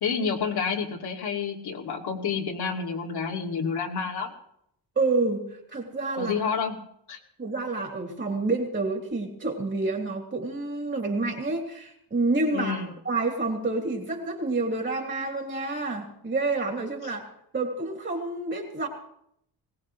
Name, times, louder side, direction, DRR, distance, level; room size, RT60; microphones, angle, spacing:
voice 1, 0.0-4.3 6.2-6.8 7.1-7.2 12.5-12.9 17.0-17.1, left 6 dB, 65° left, 0 dB, 2.6 m, -29 dB
voice 2, 4.9-6.5 7.4-17.3 17.5-18.9, right 3 dB, 25° right, 1 dB, 3.2 m, -28 dB
21.5 x 18.5 x 3.2 m, 0.74 s
wide cardioid pair, 160°, 41 cm